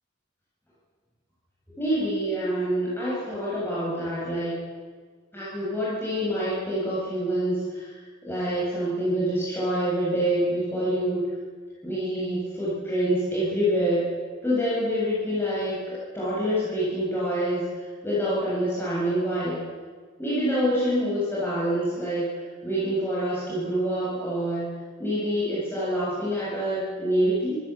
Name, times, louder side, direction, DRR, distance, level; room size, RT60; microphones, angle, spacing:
voice 1, 1.8-4.6 5.3-8.0 8.3-11.3 11.8-14.1 14.4-17.7 18.0-19.6 20.2-22.3 22.6-24.7 25.0-27.6, equal, 10° left, -8 dB, 7.8 m, -26 dB
25.5 x 15.0 x 8.5 m, 1.5 s
head